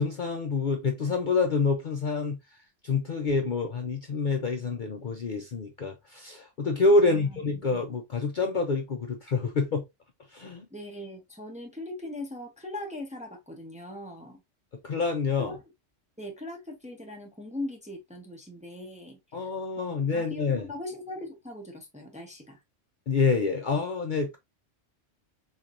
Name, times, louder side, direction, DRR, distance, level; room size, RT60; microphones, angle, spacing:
voice 1, 0.0-2.4 2.8-9.8 10.3-10.7 14.8-15.5 19.3-20.7 23.1-24.4, left 4 dB, 50° left, 0.6 m, -27 dB
voice 2, 7.0-7.6 10.7-14.4 15.4-15.6 16.2-19.5 19.8-22.6, left 1 dB, 5° right, 0.7 m, -40 dB
4.4 x 3.2 x 2.5 m
omnidirectional pair, 1.3 m